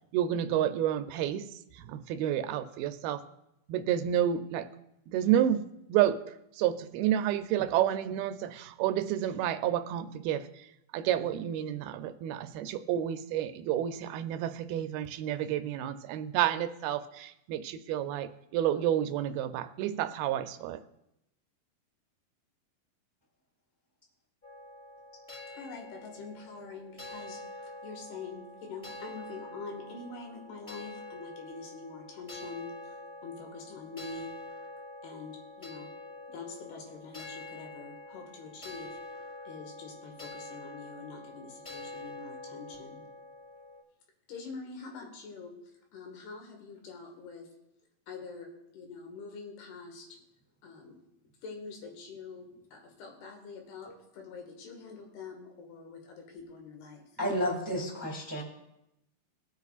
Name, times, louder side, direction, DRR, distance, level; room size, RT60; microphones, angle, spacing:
voice 1, 0.1-3.2 3.7-4.7 5.1-5.6 5.9-6.2 6.6-10.7 10.9-20.8, right 11 dB, 80° right, 10 dB, 2.4 m, -30 dB
sound 1, 24.4-43.8, left 2 dB, 15° left, 3.5 m, -46 dB
voice 2, 25.5-32.7 33.2-34.3 35.0-35.9 36.3-39.0 39.5-43.0 44.3-45.5 45.9-47.5 48.1-48.5 48.7-50.1 50.6-50.9 51.4-57.1, left 4 dB, 85° left, 1 dB, 3.8 m, -45 dB
voice 3, 57.2-58.4, equal, 10° right, -1 dB, 1.0 m, -31 dB
21.0 x 8.2 x 2.4 m, 0.85 s
omnidirectional pair, 4.5 m